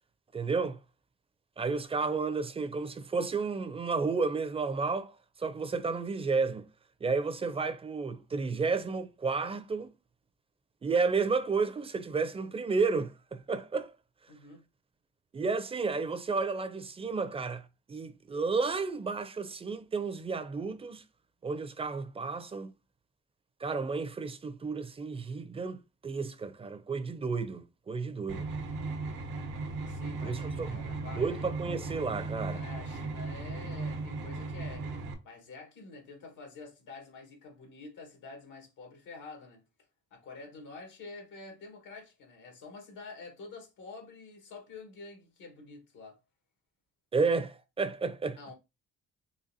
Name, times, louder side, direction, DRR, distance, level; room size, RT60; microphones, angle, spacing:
voice 1, 0.3-0.8 1.6-6.6 7.0-9.9 10.8-13.9 15.3-21.0 21.4-22.7 23.6-28.5 30.2-30.8 31.2-32.6 47.1-48.4, right 4 dB, 20° right, 0.4 m, -32 dB
voice 2, 14.3-14.6 29.9-31.4 32.5-34.9 35.2-39.6 40.1-46.2 48.4-48.5, left 3 dB, 90° left, 1.5 m, -48 dB
sound 1, 28.3-35.1, right 3 dB, 90° right, 0.9 m, -37 dB
4.0 x 2.9 x 2.7 m
cardioid pair, 90°, 30 cm